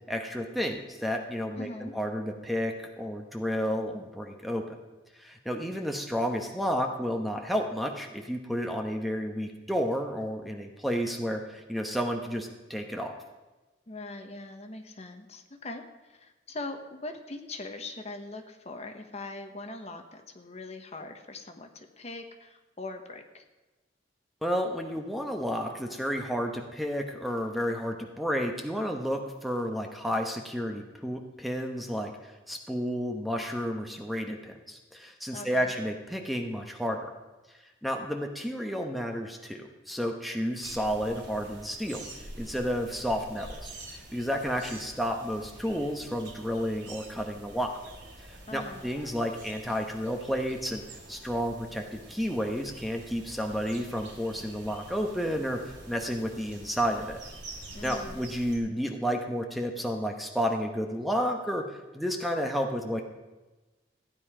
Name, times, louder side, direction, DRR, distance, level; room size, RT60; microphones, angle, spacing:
voice 1, 0.1-4.8 5.1-13.1 24.4-37.1 37.8-47.8 48.3-50.8 51.1-55.6 55.9-57.2 57.8-63.0, equal, ahead, 3 dB, 1.0 m, -31 dB
voice 2, 1.5-1.9 13.9-23.4 35.3-35.7 48.5-48.9 57.7-58.2, left 2 dB, 35° left, 6 dB, 1.1 m, -41 dB
sound 1, 40.6-58.6, right 2 dB, 65° right, 3.0 m, -47 dB
15.5 x 9.5 x 4.9 m, 1.2 s
head